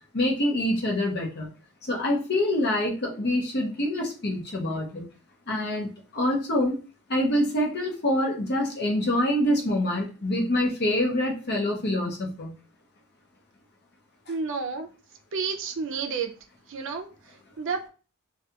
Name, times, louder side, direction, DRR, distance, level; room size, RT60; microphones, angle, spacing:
voice 1, 0.1-1.5 1.8-5.0 5.5-6.8 7.1-12.5, left 1 dB, 50° left, 0 dB, 0.7 m, -26 dB
voice 2, 14.3-14.9 15.3-16.3 16.7-17.9, right 5 dB, 60° right, 3 dB, 0.5 m, -31 dB
2.4 x 2.3 x 2.8 m, 0.35 s
head